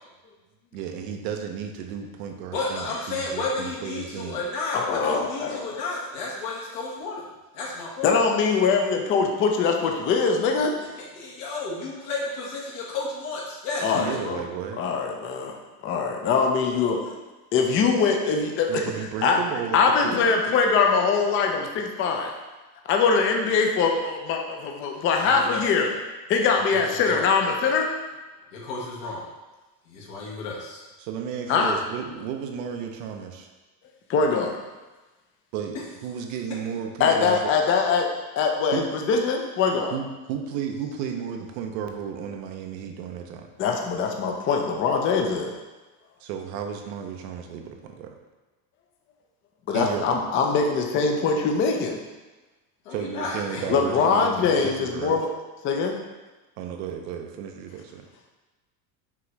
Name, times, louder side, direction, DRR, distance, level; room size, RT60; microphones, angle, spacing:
voice 1, 0.7-4.4 13.9-14.8 18.7-20.2 31.0-33.5 35.5-37.5 38.7-38.9 39.9-43.5 46.2-48.2 49.7-50.2 52.9-55.2 56.6-57.8, right 8 dB, 85° right, 4 dB, 0.7 m, -33 dB
voice 2, 2.5-7.2 7.5-8.1 10.8-14.2 16.6-17.0 25.1-25.6 26.7-26.8 27.1-27.2 28.5-29.2 29.9-30.8 52.8-53.8, left 3 dB, 70° left, -4 dB, 1.5 m, -32 dB
voice 3, 4.7-5.6 8.0-10.7 13.8-14.4 14.8-15.6 15.8-17.0 17.5-18.9 19.2-19.4 19.7-22.3 22.9-25.9 26.3-27.9 31.5-31.8 34.1-34.6 37.0-38.1 38.4-39.9 43.6-45.5 49.7-52.0 53.7-55.3 55.6-56.0, left 5 dB, 25° left, 2 dB, 0.4 m, -22 dB
5.7 x 2.5 x 3.1 m, 1.2 s
supercardioid pair, 120°, 49 cm